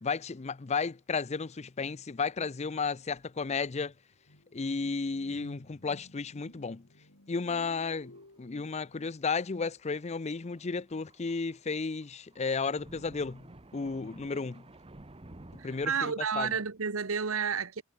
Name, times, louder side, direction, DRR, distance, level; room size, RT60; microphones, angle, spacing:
voice 1, 0.0-3.9 4.5-6.8 7.3-8.1 8.4-13.4 13.7-14.6 15.6-16.6, left 4 dB, 35° left, 0.5 m, -33 dB
sound 1, 3.9-9.3, left 1 dB, 85° left, 5.3 m, -54 dB
Thunder, 8.0-8.4 8.7-8.8 9.8-16.0, right 1 dB, 25° right, 1.2 m, -53 dB
voice 2, 15.6-17.8, right 6 dB, 85° right, 1.2 m, -31 dB
head